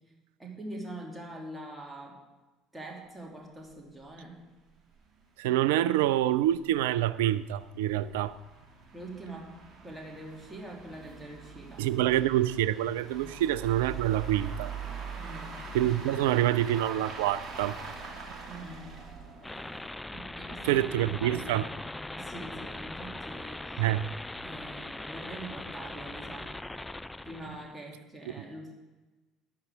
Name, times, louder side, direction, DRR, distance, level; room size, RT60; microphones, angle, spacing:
voice 1, 0.4-2.2 2.7-4.4 8.9-9.6 9.8-11.9 13.2-13.4 15.2-15.6 18.5-18.9 20.1-21.7 22.2-23.7 24.4-26.5 27.2-28.7, right 1 dB, 10° right, 2.8 m, -44 dB
sound 1, 3.6-3.7 4.0-4.1 4.5-4.6 5.0-5.1 5.7-20.1, right 5 dB, 30° right, 2.6 m, -43 dB
voice 2, 5.4-8.3 11.8-14.7 15.7-17.8 20.6-21.7 23.8-24.1, right 13 dB, 65° right, 0.4 m, -26 dB
sound 2, 19.4-27.7, left 2 dB, 10° left, 0.4 m, -41 dB
14.5 x 11.0 x 3.6 m
figure-of-eight pair, 60°, 0 cm